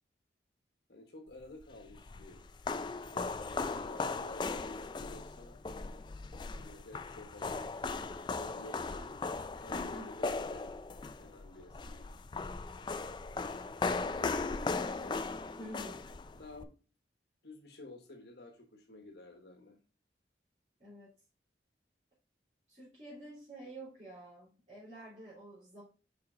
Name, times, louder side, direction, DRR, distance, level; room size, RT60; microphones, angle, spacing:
voice 1, 0.9-2.4 3.1-5.6 6.5-9.2 9.6-10.7 11.2-12.1 14.1-15.2 15.7-16.0 16.3-16.7 17.4-19.8, left 2 dB, 65° left, 4 dB, 1.2 m, -52 dB
sound 1, 1.6-16.6, left 3 dB, 25° left, 0.3 m, -38 dB
voice 2, 9.7-10.1 15.6-16.0 20.8-21.1 22.7-25.8, equal, 35° right, -10 dB, 3.3 m, -48 dB
5.7 x 5.2 x 3.7 m, 0.35 s
head